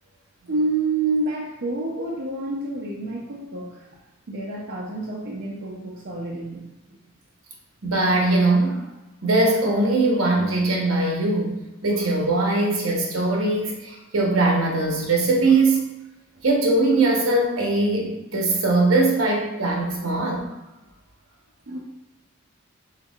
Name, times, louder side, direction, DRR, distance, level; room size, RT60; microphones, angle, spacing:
voice 1, 0.5-4.0 4.3-6.7 21.7-21.8, right 3 dB, 55° right, -4 dB, 0.6 m, -28 dB
voice 2, 7.8-8.8 9.2-15.9 16.4-20.5, right 2 dB, 80° right, 0 dB, 1.0 m, -21 dB
4.6 x 3.5 x 2.4 m, 1.0 s
head